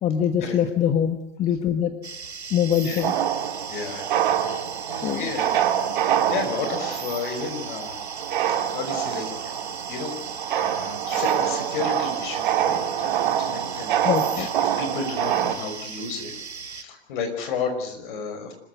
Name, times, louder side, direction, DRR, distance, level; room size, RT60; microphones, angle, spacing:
voice 1, 0.0-2.0 2.5-3.2 5.0-5.3 14.0-14.5, left 9 dB, 20° left, 9 dB, 1.4 m, -23 dB
sound 1, 2.0-16.8, right 5 dB, 80° right, 1.3 m, -38 dB
sound 2, 3.0-15.6, right 10 dB, 45° right, 2.2 m, -26 dB
voice 2, 3.7-4.1 4.4-5.6 6.0-7.9 8.4-10.2 10.5-16.3 16.7-18.5, left 5 dB, 50° left, 6 dB, 5.9 m, -33 dB
25.5 x 14.5 x 9.5 m, 0.77 s
figure-of-eight pair, 115°, 33 cm